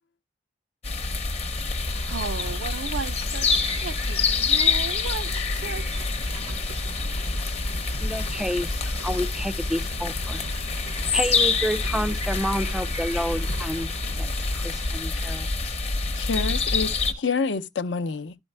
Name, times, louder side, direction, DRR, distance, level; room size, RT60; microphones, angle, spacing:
sound 1, 0.8-17.1, left 4 dB, 35° left, 0.7 m, -26 dB
Rain, 1.8-14.9, right 4 dB, 90° right, 0.9 m, -44 dB
voice 1, 2.1-6.1, right 6 dB, 70° right, 0.4 m, -35 dB
voice 2, 8.0-10.4 11.1-13.9 14.2-14.3 14.5-15.5, equal, 5° right, 0.3 m, -29 dB
voice 3, 16.1-18.4, left 4 dB, 70° left, 0.6 m, -28 dB
12.0 x 4.5 x 3.2 m
head